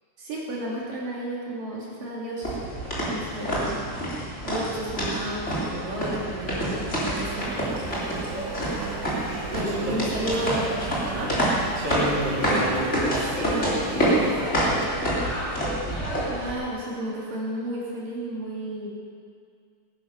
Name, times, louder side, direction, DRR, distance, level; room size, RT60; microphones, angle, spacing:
voice 1, 0.2-2.6 3.0-3.8 4.1-6.8 7.2-7.6 9.5-10.7 11.2-11.3 16.3-18.9, right 1 dB, 60° right, -5 dB, 4.1 m, -32 dB
sound 1, 2.4-16.5, equal, 20° left, 3.3 m, -27 dB
voice 2, 2.8-3.1 9.7-10.0 11.1-11.4 11.8-14.9, equal, 30° right, -6 dB, 3.1 m, -32 dB
Engine, 5.7-15.7, right 8 dB, 75° right, 1.7 m, -38 dB
19.5 x 10.5 x 5.8 m, 2.2 s
omnidirectional pair, 4.6 m